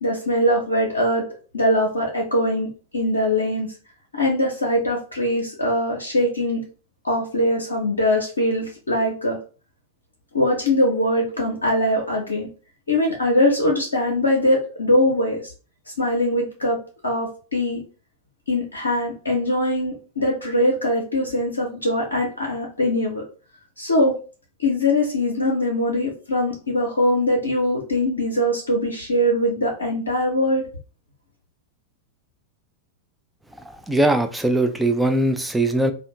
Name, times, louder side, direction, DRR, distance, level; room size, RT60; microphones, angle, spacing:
voice 1, 0.0-1.3 1.5-3.7 4.1-6.7 7.0-9.4 10.3-12.5 12.9-15.4 16.0-16.8 17.0-17.8 18.5-23.2 23.8-24.2 24.6-30.6, left 1 dB, 75° left, 0.5 m, -22 dB
voice 2, 33.9-35.9, right 1 dB, 5° right, 0.4 m, -20 dB
2.5 x 2.1 x 2.8 m
figure-of-eight pair, 90°, 0 cm